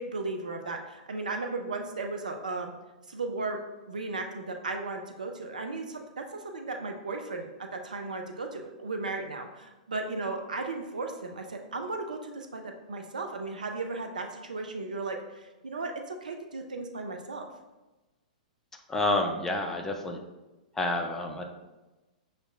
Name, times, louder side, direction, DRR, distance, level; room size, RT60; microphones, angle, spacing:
voice 1, 0.0-2.7 3.1-3.6 3.9-17.5, right 3 dB, 70° right, 4 dB, 0.4 m, -35 dB
voice 2, 18.9-20.2 20.8-21.4, left 2 dB, 10° left, 2 dB, 0.4 m, -29 dB
6.3 x 2.2 x 2.4 m, 1.1 s
figure-of-eight pair, 105°, 4 cm